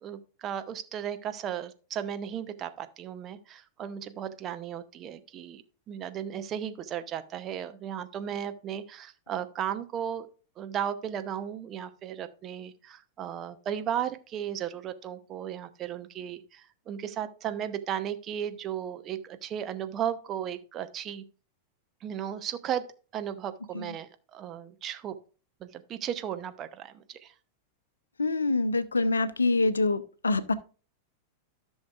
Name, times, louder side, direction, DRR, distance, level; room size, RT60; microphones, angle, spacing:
voice 1, 0.0-10.3 10.6-21.2 22.0-22.9 23.1-25.1 25.6-27.3, right 9 dB, 30° right, 0.8 m, -35 dB
voice 2, 28.2-30.5, left 3 dB, 75° left, 0.6 m, -25 dB
14.0 x 6.3 x 2.4 m
figure-of-eight pair, 90°, 0 cm